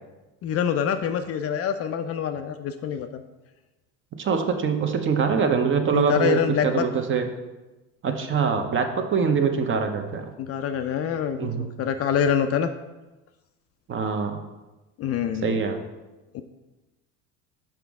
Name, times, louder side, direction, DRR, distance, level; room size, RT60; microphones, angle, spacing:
voice 1, 0.4-3.2 5.9-6.8 10.4-12.7 15.0-15.6 16.3-16.4, left 8 dB, 40° left, 8 dB, 0.4 m, -25 dB
voice 2, 4.2-7.3 8.0-10.3 11.4-11.7 13.9-14.4 15.4-15.8, right 6 dB, 35° right, 6 dB, 0.7 m, -24 dB
5.8 x 5.1 x 3.5 m, 1.1 s
supercardioid pair, 95°, 37 cm